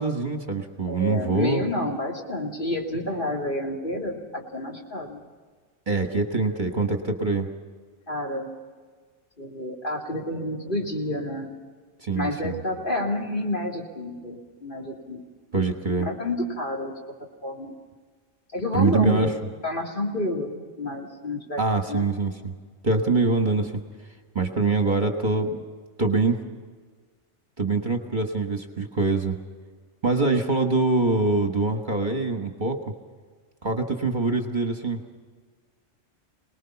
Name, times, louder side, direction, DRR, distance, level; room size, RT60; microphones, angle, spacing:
voice 1, 0.0-1.6 5.9-7.5 12.0-12.6 15.5-16.1 18.7-19.3 21.6-22.5 22.8-23.7 24.3-25.6 26.0-26.4 27.6-29.4 30.0-32.8 33.6-35.0, right 3 dB, 40° right, 4 dB, 1.6 m, -24 dB
voice 2, 0.9-5.2 8.1-8.6 9.4-11.5 12.1-15.2 16.0-16.9 17.4-17.7 18.5-19.3 19.6-20.5 20.8-21.6 21.9-22.1, left 1 dB, 40° left, -1 dB, 3.1 m, -29 dB
28.0 x 19.5 x 5.8 m, 1.5 s
omnidirectional pair, 1.3 m